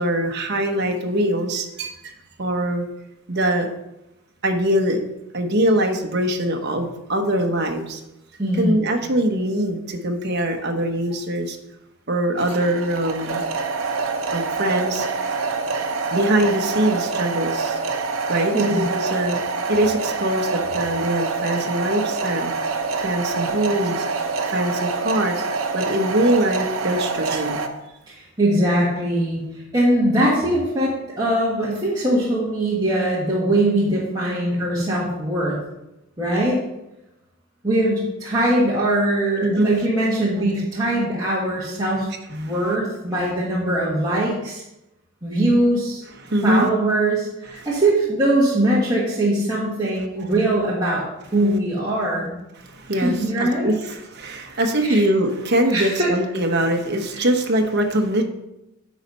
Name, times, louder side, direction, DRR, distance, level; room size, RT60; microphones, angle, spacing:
voice 1, 0.0-2.1 2.4-2.9 3.3-3.7 4.4-5.0 5.3-8.0 8.6-11.6 12.1-13.4 14.3-15.5 16.1-17.8 18.3-19.4 19.7-22.5 23.0-24.0 24.5-25.4 25.7-27.7 39.4-39.7 42.4-42.5 46.2-46.7 52.6-58.2, right 1 dB, 50° right, 4 dB, 1.0 m, -22 dB
voice 2, 8.4-8.8 18.5-18.8 28.1-29.4 29.7-35.6 36.2-36.6 37.6-44.6 45.2-46.0 46.4-51.0 51.3-52.3 52.9-53.7 54.5-54.6 54.9-55.0 55.7-56.1 57.1-57.2, right 1 dB, 20° right, -7 dB, 1.5 m, -21 dB
sound 1, 12.4-27.7, right 4 dB, 75° right, 0.8 m, -26 dB
9.6 x 4.2 x 5.4 m, 0.91 s
head